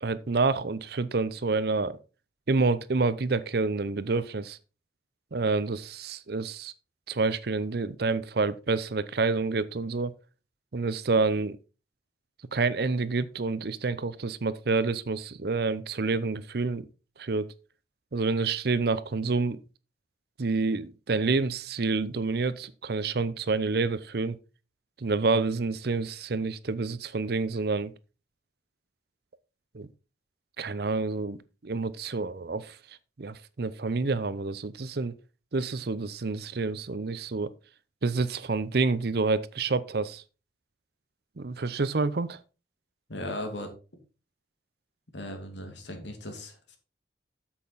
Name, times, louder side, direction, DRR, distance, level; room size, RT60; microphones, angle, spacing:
voice 1, 0.0-2.0 2.5-4.6 5.3-6.7 7.1-10.1 10.7-11.6 12.5-16.8 17.2-17.5 18.1-19.6 20.4-24.4 25.0-27.9 29.7-29.9 30.6-31.4 31.6-32.8 33.2-35.1 35.5-37.5 38.0-40.2 41.4-42.4, right 3 dB, 60° right, 0.6 m, -28 dB
voice 2, 43.1-43.7 45.1-46.8, left 1 dB, 75° left, 2.5 m, -37 dB
8.5 x 7.5 x 4.0 m
head